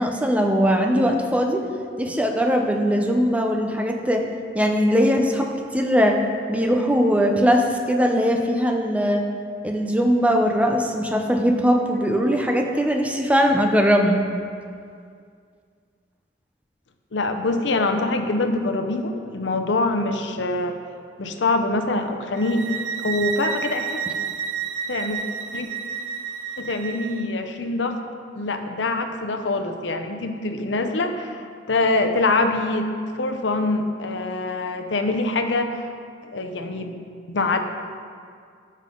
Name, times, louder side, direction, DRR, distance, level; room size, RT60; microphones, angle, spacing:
voice 1, 0.0-1.6 2.0-4.3 4.5-6.2 6.5-9.3 9.6-14.3, equal, 10° right, 3 dB, 0.6 m, -20 dB
voice 2, 17.1-20.8 21.2-22.7 23.0-24.0 24.9-25.2 25.5-25.7 26.6-28.0 28.3-32.9 33.2-35.8 36.3-37.6, left 2 dB, 90° left, 6 dB, 0.7 m, -24 dB
sound 1, 22.4-27.3, right 7 dB, 75° right, 0.7 m, -30 dB
12.5 x 5.7 x 3.8 m, 2.2 s
head